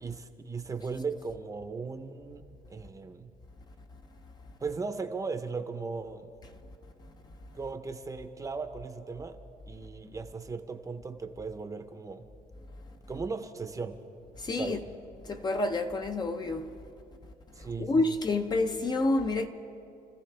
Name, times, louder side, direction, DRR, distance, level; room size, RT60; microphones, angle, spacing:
voice 1, 0.0-2.4 2.7-3.3 4.6-6.3 7.5-9.4 9.7-12.3 13.1-14.0 14.6-14.8 17.6-18.1, right 4 dB, 20° right, 0.8 m, -37 dB
voice 2, 14.4-14.8 15.2-16.7 17.8-19.5, left 2 dB, 25° left, 0.7 m, -28 dB
29.0 x 15.0 x 3.3 m
cardioid pair, 135°, 16 cm